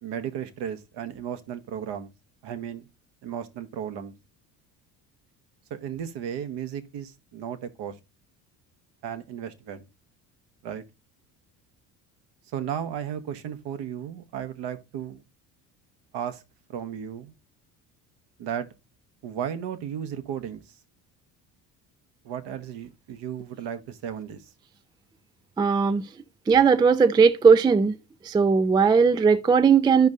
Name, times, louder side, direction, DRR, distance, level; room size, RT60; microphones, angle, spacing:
voice 1, 0.0-2.1 2.4-2.9 3.2-4.1 5.7-8.0 9.0-9.9 10.6-10.8 12.5-15.2 16.1-16.4 16.7-17.3 18.4-18.7 19.2-20.8 22.2-24.5, right 9 dB, 55° right, 1.2 m, -34 dB
voice 2, 25.6-26.0 26.5-28.0 28.2-30.1, right 5 dB, 10° right, 0.4 m, -18 dB
13.0 x 5.3 x 2.5 m
hypercardioid pair, 60°, 48 cm